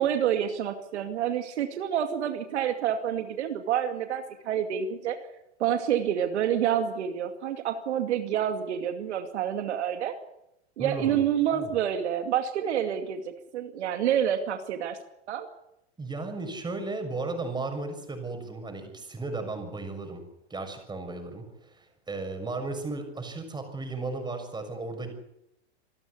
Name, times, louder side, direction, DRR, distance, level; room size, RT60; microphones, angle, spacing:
voice 1, 0.0-5.2 5.6-10.1 10.8-15.0 15.3-15.5, right 9 dB, 80° right, 6 dB, 2.5 m, -28 dB
voice 2, 10.8-11.2 11.5-11.7 16.0-20.2 20.5-25.1, right 3 dB, 10° right, 5 dB, 6.7 m, -35 dB
27.0 x 12.5 x 9.7 m, 0.82 s
hypercardioid pair, 120°, 34 cm